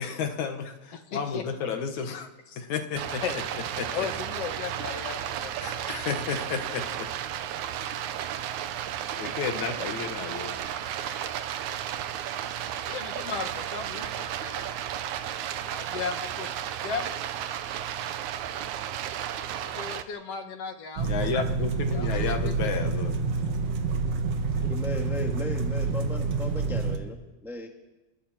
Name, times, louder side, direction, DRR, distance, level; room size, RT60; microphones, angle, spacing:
voice 1, 0.0-2.3 2.6-3.2 3.8-3.9 5.6-7.1 9.2-10.6 21.0-23.1, left 6 dB, 80° left, 6 dB, 3.0 m, -32 dB
voice 2, 0.9-1.4 2.5-2.6 3.2-3.4 3.9-6.0 12.9-14.7 15.6-16.5 16.8-17.1 19.6-21.1 21.9-22.7, left 6 dB, 60° left, 6 dB, 2.5 m, -36 dB
Stream, 3.0-20.0, right 10 dB, 90° right, 2.4 m, -33 dB
sound 1, 21.0-27.0, right 4 dB, 60° right, 2.4 m, -28 dB
voice 3, 24.6-27.7, left 2 dB, ahead, 2 dB, 1.6 m, -36 dB
28.0 x 21.5 x 4.5 m, 1.1 s
omnidirectional pair, 3.3 m